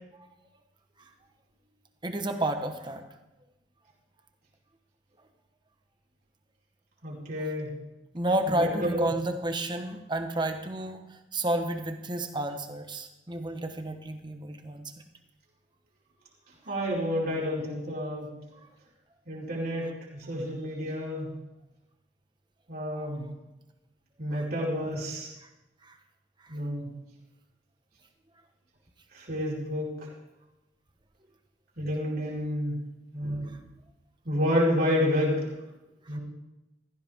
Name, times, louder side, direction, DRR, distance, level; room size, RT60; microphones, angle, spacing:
voice 1, 2.0-3.0 8.1-14.9 23.1-23.2 24.3-24.4 24.8-24.9 25.4-25.5 25.8-26.0 26.4-26.6 36.1-36.2, right 1 dB, 25° right, 6 dB, 1.2 m, -31 dB
voice 2, 7.0-7.7 8.5-9.1 16.7-18.3 19.3-19.9 20.2-21.3 22.7-23.3 24.2-25.3 26.5-26.9 29.1-30.1 31.8-32.8 33.1-33.6 34.2-35.5 36.1-36.2, equal, 55° right, -5 dB, 4.6 m, -29 dB
16.0 x 14.5 x 3.6 m, 0.99 s
head